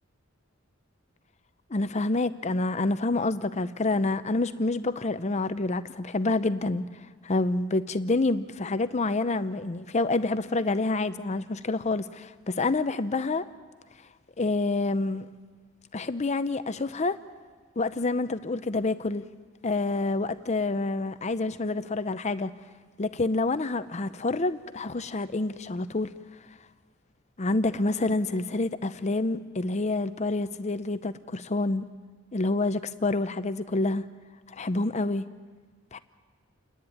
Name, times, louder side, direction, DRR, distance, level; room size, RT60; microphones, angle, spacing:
voice 1, 1.7-6.9 7.2-13.4 14.4-15.3 15.9-17.2 17.8-19.2 19.6-22.5 23.0-26.1 27.4-31.9 32.3-34.0 34.5-35.2 35.9-36.0, left 2 dB, 35° left, 12 dB, 0.6 m, -27 dB
29.0 x 10.5 x 9.9 m, 1.5 s
head